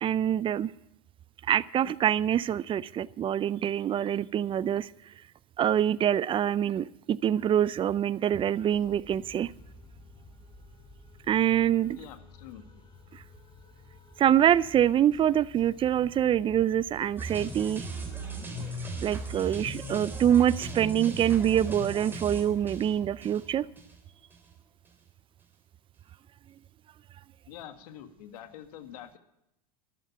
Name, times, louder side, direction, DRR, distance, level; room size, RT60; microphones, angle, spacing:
voice 1, 0.0-0.7 1.5-4.9 5.6-9.5 11.3-12.0 13.1-13.2 14.2-17.9 19.0-23.7, right 10 dB, 25° right, 20 dB, 0.5 m, -25 dB
sound 1, 8.7-20.1, left 3 dB, 20° left, 4.2 m, -53 dB
voice 2, 11.9-12.8 27.5-29.2, left 10 dB, 75° left, 8 dB, 1.8 m, -46 dB
sound 2, 17.2-24.0 24.3-24.5, right 2 dB, 10° right, 3.5 m, -37 dB
14.0 x 12.5 x 5.8 m, 0.84 s
supercardioid pair, 115°, 20 cm